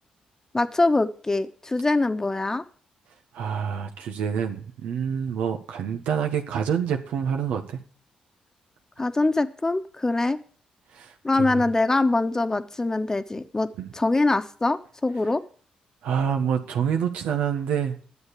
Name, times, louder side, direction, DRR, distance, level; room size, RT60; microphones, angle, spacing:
voice 1, 0.5-2.6 9.0-10.4 11.2-15.4, left 2 dB, 20° left, 10 dB, 1.2 m, -23 dB
voice 2, 3.3-7.8 10.9-11.6 13.8-13.9 16.0-18.0, right 7 dB, 85° right, 4 dB, 1.4 m, -27 dB
11.0 x 7.3 x 8.4 m, 0.42 s
supercardioid pair, 65°, 3 cm